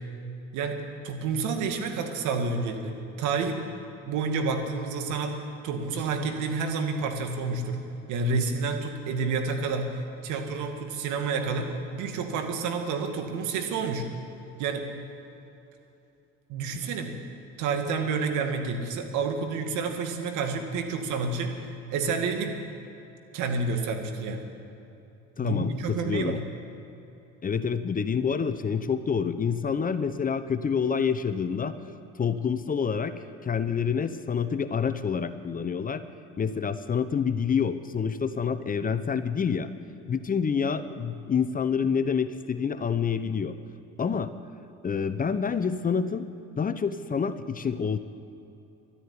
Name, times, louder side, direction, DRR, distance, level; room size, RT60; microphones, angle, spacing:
voice 1, 0.5-3.6 4.1-7.8 8.1-14.1 14.6-14.9 16.5-17.2 17.6-21.5 21.9-22.6 23.3-24.4 25.4-26.4, right 4 dB, 70° right, 5 dB, 2.2 m, -29 dB
voice 2, 25.4-26.4 27.4-31.8 32.2-33.1 33.4-36.0 36.4-39.7 40.1-43.5 44.0-44.3 44.8-46.2 46.6-48.0, left 6 dB, 25° left, 11 dB, 0.8 m, -27 dB
12.5 x 10.0 x 9.8 m, 2.8 s
supercardioid pair, 85°, 31 cm